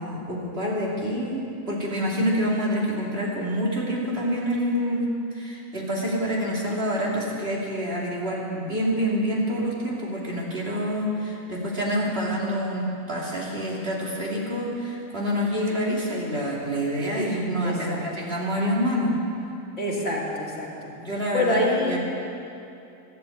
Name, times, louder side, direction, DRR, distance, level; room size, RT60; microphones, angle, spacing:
voice 1, 0.0-1.4 1.7-5.0 5.3-19.1 21.0-22.0, equal, 40° right, -4 dB, 3.2 m, -27 dB
voice 2, 17.6-18.0 19.8-20.9 21.3-22.0, left 1 dB, 50° left, -4 dB, 3.0 m, -26 dB
13.0 x 13.0 x 8.7 m, 2.7 s
omnidirectional pair, 1.7 m